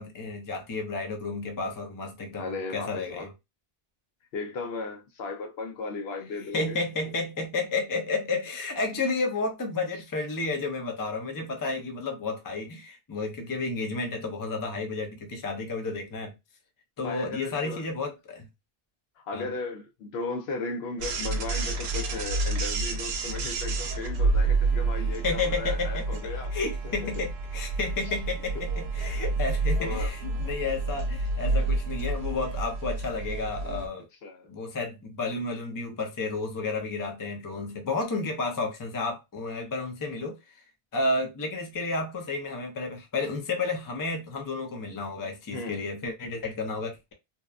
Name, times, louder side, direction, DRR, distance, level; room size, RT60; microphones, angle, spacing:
voice 1, 0.0-3.3 6.5-16.3 17.0-18.5 19.3-19.5 25.2-34.0 34.5-40.4 40.9-47.1, left 3 dB, 25° left, 0.5 m, -31 dB
voice 2, 2.4-3.3 4.3-6.8 17.0-17.9 19.2-26.5 27.0-27.1 29.8-30.1 34.2-34.5 45.5-45.9, left 3 dB, 75° left, 0.9 m, -36 dB
sound 1, 21.0-33.9, right 3 dB, 80° right, 0.8 m, -29 dB
2.7 x 2.2 x 2.3 m
omnidirectional pair, 1.1 m